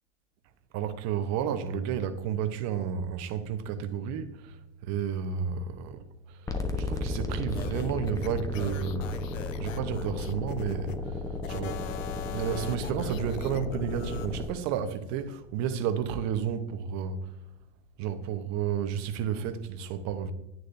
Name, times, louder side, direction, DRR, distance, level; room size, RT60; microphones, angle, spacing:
voice 1, 0.7-9.2 9.6-11.2 11.5-11.9 12.3-17.3 18.0-20.3, right 8 dB, 45° right, 1.1 m, -32 dB
sound 1, 6.5-14.5, left 3 dB, 10° left, 1.0 m, -34 dB
sound 2, 7.5-11.0 11.4-14.3, left 11 dB, 80° left, 0.7 m, -43 dB
10.0 x 9.6 x 2.7 m
hypercardioid pair, 110°, 39 cm